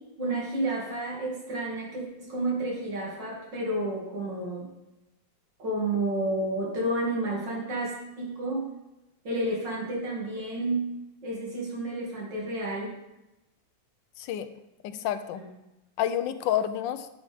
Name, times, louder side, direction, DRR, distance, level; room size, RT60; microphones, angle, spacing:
voice 1, 0.2-4.7 5.6-8.7 9.2-10.9 11.2-12.9 15.4-15.5, right 2 dB, 70° right, -3 dB, 3.0 m, -30 dB
voice 2, 14.2-14.5 14.8-15.4 16.0-17.1, left 10 dB, 80° left, 11 dB, 1.3 m, -29 dB
9.0 x 7.7 x 3.5 m, 0.95 s
omnidirectional pair, 2.1 m